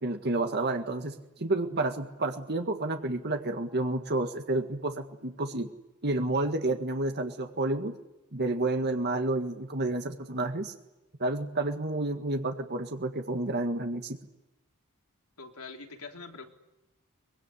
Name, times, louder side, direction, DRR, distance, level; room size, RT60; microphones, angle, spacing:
voice 1, 0.0-5.7 6.0-7.9 8.3-10.7 11.2-14.2, right 2 dB, 50° right, 5 dB, 1.8 m, -30 dB
voice 2, 15.4-16.5, left 4 dB, 80° left, 4 dB, 3.5 m, -43 dB
24.0 x 23.0 x 9.9 m, 0.96 s
head